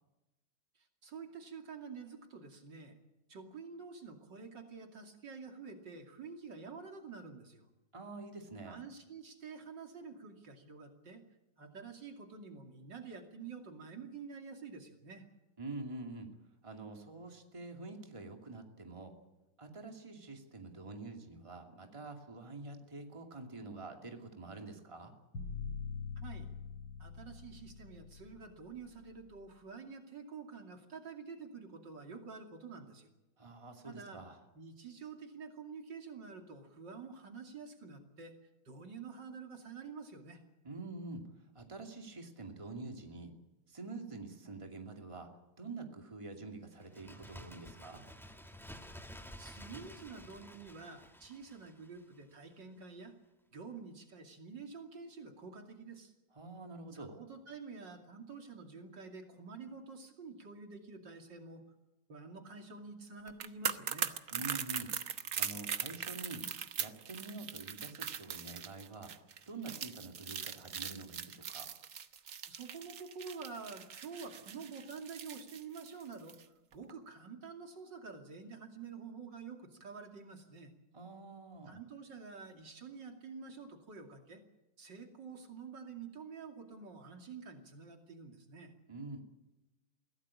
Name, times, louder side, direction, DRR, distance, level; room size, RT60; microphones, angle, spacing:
voice 1, 0.7-3.0 3.3-7.7 8.7-11.2 11.6-15.3 26.2-26.5 27.0-33.1 33.8-34.2 34.5-38.4 38.6-40.4 49.4-53.1 53.5-56.1 56.9-61.6 62.1-64.1 72.5-80.7 81.7-84.4 84.8-88.7, right 5 dB, 70° right, 4 dB, 3.3 m, -48 dB
voice 2, 7.9-8.8 15.6-16.3 16.6-19.1 19.6-25.1 33.4-34.4 40.6-41.2 41.5-43.3 43.7-45.3 45.6-48.0 56.3-57.2 64.3-64.9 65.4-66.5 66.8-69.1 69.5-71.7 80.9-81.8 88.9-89.2, right 3 dB, 15° right, 4 dB, 2.5 m, -46 dB
sound 1, 25.3-29.4, left 5 dB, 90° left, 2.9 m, -44 dB
Bird, 46.8-52.3 52.6-52.7, equal, ahead, 1.4 m, -52 dB
sound 2, 63.3-76.4 76.7-76.9, right 8 dB, 50° right, 1.3 m, -40 dB
23.0 x 16.5 x 8.6 m, 1.0 s
omnidirectional pair, 2.0 m